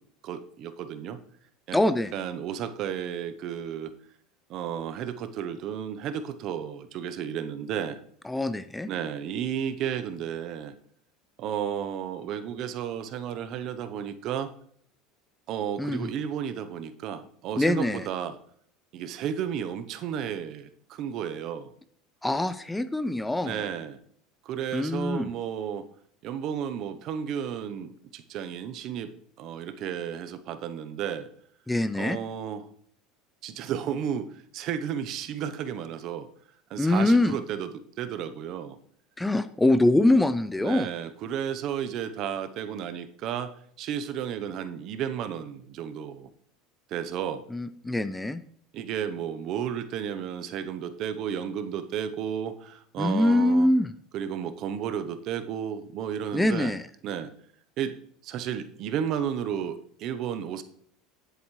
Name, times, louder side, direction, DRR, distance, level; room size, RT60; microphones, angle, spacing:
voice 1, 0.2-1.2 1.7-1.8 2.1-3.9 4.5-8.0 8.9-10.7 11.4-14.5 15.5-18.3 18.9-21.7 23.4-24.0 24.4-25.8 26.2-29.1 29.4-31.3 32.0-32.6 33.4-34.3 34.5-36.3 36.7-38.8 40.6-43.5 43.8-46.3 46.9-47.4 48.7-53.7 54.1-56.7 57.0-57.3 57.8-57.9 58.2-60.6, right 8 dB, 50° right, 10 dB, 0.9 m, -33 dB
voice 2, 1.7-2.1 8.2-8.9 15.8-16.1 17.6-18.1 22.2-23.6 24.7-25.3 31.7-32.2 36.8-37.4 39.2-40.9 47.5-48.4 53.0-53.9 56.3-56.9, left 1 dB, 5° left, 13 dB, 0.4 m, -24 dB
9.8 x 8.0 x 3.2 m, 0.62 s
supercardioid pair, 130°, 0 cm